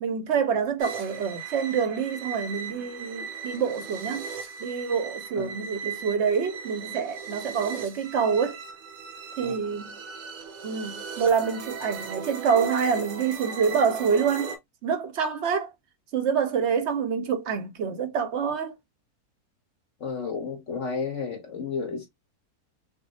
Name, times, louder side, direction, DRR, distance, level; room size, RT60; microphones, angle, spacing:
voice 1, 0.0-4.3 4.6-8.6 9.4-10.0 10.6-14.6 14.8-15.7 16.1-18.7, right 6 dB, 55° right, 0.9 m, -26 dB
sound 1, 0.8-14.6, right 6 dB, 85° right, 1.4 m, -38 dB
voice 2, 5.4-5.7 9.4-9.5 20.0-22.1, left 5 dB, 50° left, 1.9 m, -32 dB
6.0 x 2.2 x 2.8 m
omnidirectional pair, 1.6 m